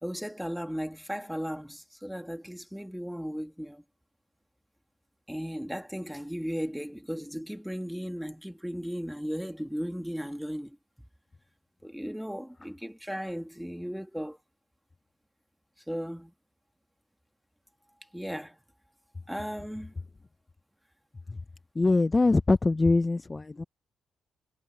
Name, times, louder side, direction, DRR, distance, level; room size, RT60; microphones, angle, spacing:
voice 1, 0.0-3.8 5.3-10.8 11.8-14.4 15.9-16.3 18.1-18.6 19.3-19.9, equal, ahead, 2.0 m, -36 dB
voice 2, 21.8-23.6, left 3 dB, 20° left, 0.4 m, -23 dB
cardioid pair, 90°, 0 cm